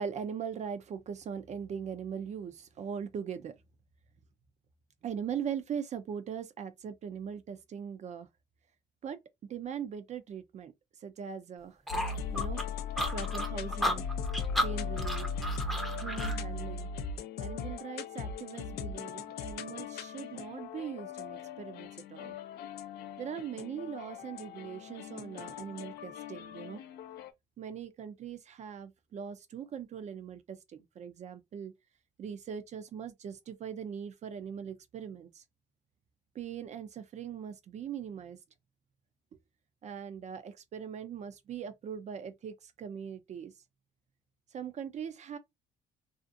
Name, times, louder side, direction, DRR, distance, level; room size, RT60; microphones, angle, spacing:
voice 1, 0.0-3.5 5.0-8.3 9.0-9.2 9.5-10.7 11.0-11.8 12.3-12.6 13.1-14.0 14.6-15.3 16.0-16.9 17.4-22.4 23.2-26.8 27.6-31.7 32.2-35.4 36.3-38.4 39.8-43.5 44.5-45.4, right 7 dB, 45° right, 0.5 m, -40 dB
sound 1, 11.9-27.3, left 5 dB, 70° left, 0.5 m, -38 dB
sound 2, 11.9-16.4, equal, ahead, 0.6 m, -33 dB
2.5 x 2.4 x 2.6 m
cardioid pair, 110°, 17 cm